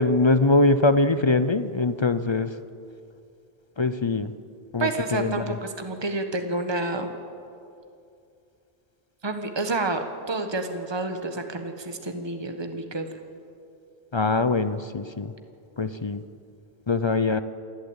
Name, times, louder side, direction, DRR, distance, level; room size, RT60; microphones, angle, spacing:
voice 1, 0.0-2.6 3.8-4.3 4.7-5.6 14.1-15.3 15.8-16.2 16.9-17.4, left 3 dB, 35° left, 12 dB, 0.5 m, -22 dB
voice 2, 4.8-7.1 9.2-13.1, right 2 dB, 25° right, 6 dB, 1.4 m, -29 dB
28.0 x 12.0 x 8.8 m, 2.5 s
omnidirectional pair, 1.1 m